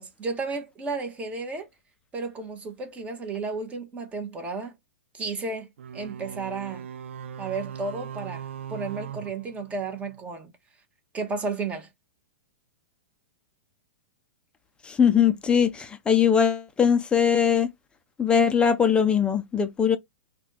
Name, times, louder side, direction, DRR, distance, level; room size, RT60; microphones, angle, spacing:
voice 1, 0.0-1.7 2.1-4.7 5.1-6.8 7.4-8.4 8.7-10.5 11.1-11.9, right 4 dB, 20° right, 1.1 m, -33 dB
sound 1, 5.8-10.2, right 8 dB, 75° right, 0.4 m, -39 dB
voice 2, 14.8-17.7 18.2-20.0, left 7 dB, 15° left, 0.5 m, -21 dB
4.0 x 2.4 x 3.0 m
hypercardioid pair, 120°, 7 cm